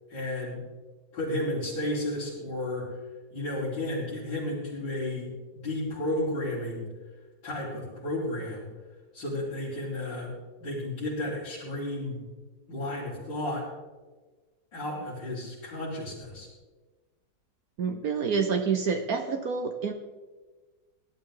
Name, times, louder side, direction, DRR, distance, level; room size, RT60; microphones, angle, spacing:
voice 1, 0.1-0.6 1.1-2.9 3.3-6.9 7.4-8.7 9.1-10.3 10.6-12.2 12.7-13.6 14.7-16.5, left 1 dB, 85° left, -12 dB, 5.3 m, -32 dB
voice 2, 17.8-19.9, right 5 dB, 60° right, 6 dB, 1.2 m, -28 dB
19.5 x 12.5 x 3.9 m, 1.3 s
omnidirectional pair, 1.9 m